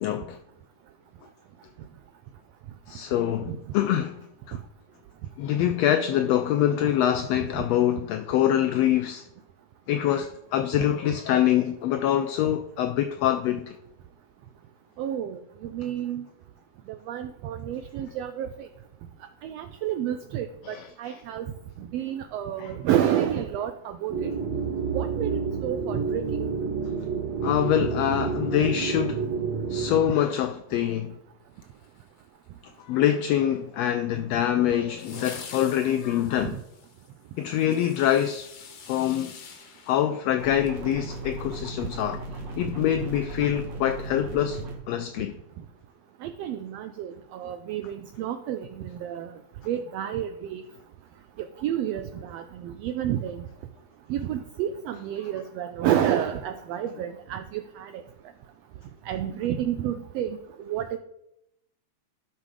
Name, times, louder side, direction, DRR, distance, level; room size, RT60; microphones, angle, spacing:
voice 1, 0.0-0.4 2.9-4.2 4.5-4.6 5.4-9.2 9.9-13.8 20.6-21.2 22.6-22.7 27.4-29.2 29.7-31.1 32.9-36.6 37.4-38.5 38.9-39.3 39.9-42.2 42.6-44.6 44.9-45.3, left 11 dB, 85° left, 1.4 m, -25 dB
voice 2, 15.0-15.4 15.7-16.3 17.1-18.7 19.4-21.5 21.9-24.3 24.9-26.4 27.8-27.9 46.2-49.3 49.7-50.6 51.6-53.4 54.1-57.9 59.1-60.4 60.7-61.0, right 10 dB, 90° right, 1.4 m, -30 dB
sound 1, 24.1-30.0, right 5 dB, 70° right, 2.2 m, -29 dB
sound 2, 31.5-32.5 35.0-40.8 41.1-41.2, left 6 dB, 60° left, 1.8 m, -46 dB
sound 3, 40.4-44.8, right 1 dB, 45° right, 1.7 m, -37 dB
12.0 x 5.7 x 4.8 m
omnidirectional pair, 3.4 m